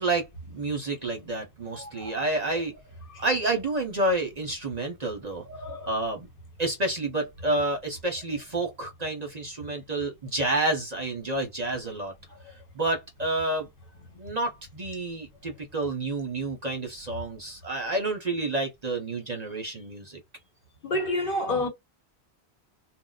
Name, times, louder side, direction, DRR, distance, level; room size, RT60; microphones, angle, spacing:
voice 1, 0.0-2.7 3.2-5.5 5.9-6.3 6.6-12.1 12.7-13.7 14.2-20.2, right 2 dB, 40° right, 0.8 m, -29 dB
voice 2, 1.8-2.1 5.5-5.9 20.8-21.7, left 1 dB, 55° left, 1.5 m, -29 dB
2.4 x 2.2 x 3.9 m
omnidirectional pair, 1.1 m